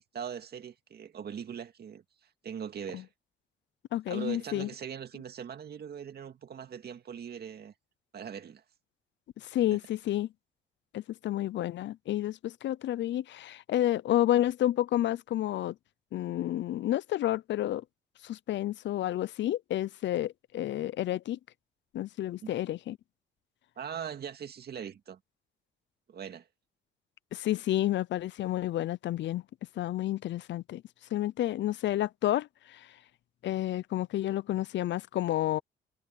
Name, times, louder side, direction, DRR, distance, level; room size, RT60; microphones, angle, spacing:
voice 1, 0.0-2.0 2.4-3.1 4.1-7.7 8.1-8.6 22.4-22.5 23.8-25.2 26.1-26.5, right 8 dB, 55° right, 2.2 m, -40 dB
voice 2, 3.9-4.7 9.4-10.3 10.9-15.8 16.1-17.8 18.2-21.4 21.9-23.0 27.3-29.4 29.8-30.8 31.1-32.9 33.4-35.6, left 13 dB, 65° left, 0.5 m, -30 dB
cardioid pair, 90°, 20 cm